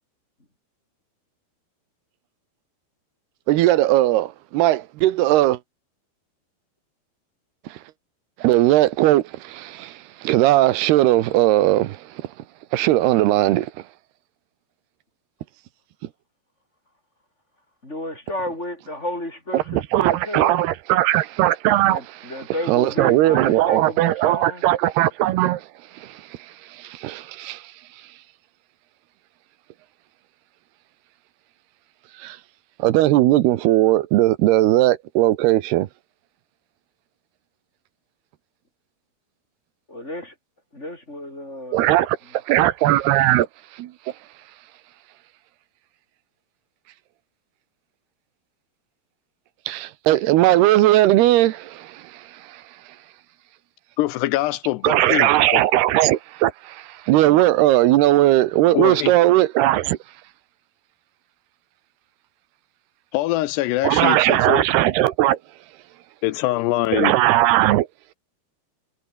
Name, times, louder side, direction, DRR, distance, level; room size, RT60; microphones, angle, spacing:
voice 1, 3.5-5.6 7.7-7.8 8.4-12.3 12.7-13.7 19.5-25.7 25.9-27.7 32.2-32.4 32.8-35.9 41.7-43.5 43.7-43.9 49.7-52.6 54.8-60.0 63.8-65.4 66.9-67.9, right 15 dB, 75° right, 3.0 m, -18 dB
voice 2, 17.8-20.7 21.9-24.6 39.9-40.3 40.7-41.8, left 1 dB, 15° left, 6.0 m, -32 dB
voice 3, 54.0-55.6 58.7-59.1 63.1-64.6 66.2-67.1, left 16 dB, 80° left, 2.9 m, -23 dB
omnidirectional pair, 4.9 m